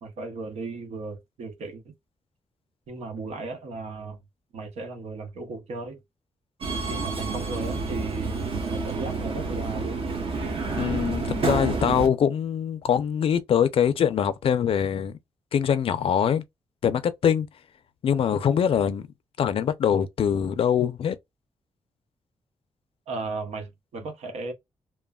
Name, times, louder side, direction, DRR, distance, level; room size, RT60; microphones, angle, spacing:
voice 1, 0.0-1.9 2.9-4.2 4.5-6.0 6.9-10.0 23.1-24.5, right 3 dB, 85° right, 0.8 m, -36 dB
Subway metro underground, 6.6-12.1, right 3 dB, 55° right, 0.9 m, -29 dB
voice 2, 10.8-15.2 15.5-16.4 16.8-17.5 18.0-19.1 19.4-21.1, left 8 dB, 60° left, 0.4 m, -23 dB
3.0 x 2.1 x 2.2 m
wide cardioid pair, 145°, 11 cm